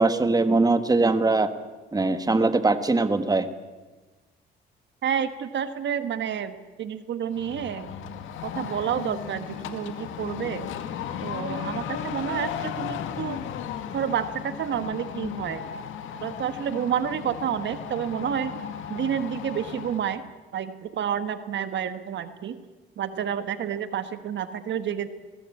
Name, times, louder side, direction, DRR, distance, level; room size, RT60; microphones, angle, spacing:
voice 1, 0.0-1.5 1.9-3.5, right 3 dB, 20° right, 10 dB, 1.7 m, -21 dB
voice 2, 5.0-7.9 8.4-10.7 11.2-13.4 13.9-15.7 16.2-18.5 18.9-20.2 20.5-22.6 23.0-25.1, right 8 dB, 65° right, 10 dB, 1.5 m, -29 dB
sound 1, 7.3-20.1, left 9 dB, 90° left, 1.9 m, -35 dB
21.5 x 20.0 x 8.6 m, 1.2 s
cardioid pair, 90°, 20 cm